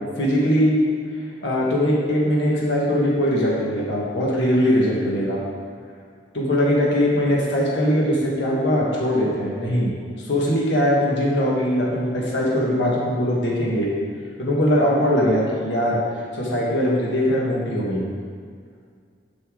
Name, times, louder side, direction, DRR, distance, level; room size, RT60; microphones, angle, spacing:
voice 1, 0.2-0.8 1.4-5.4 6.3-9.9 10.3-13.9 14.4-16.0 16.3-18.1, equal, 85° left, -4 dB, 1.5 m, -21 dB
6.8 x 6.6 x 3.7 m, 2.1 s
head